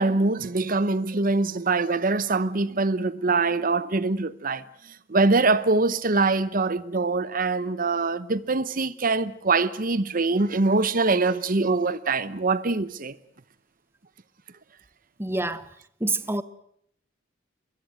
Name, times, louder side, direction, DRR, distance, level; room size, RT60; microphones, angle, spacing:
voice 1, 0.0-4.6 5.1-13.1, right 3 dB, 45° right, 0.9 m, -23 dB
voice 2, 15.2-15.6 16.0-16.4, right 2 dB, 10° right, 0.9 m, -26 dB
24.5 x 22.0 x 7.9 m
head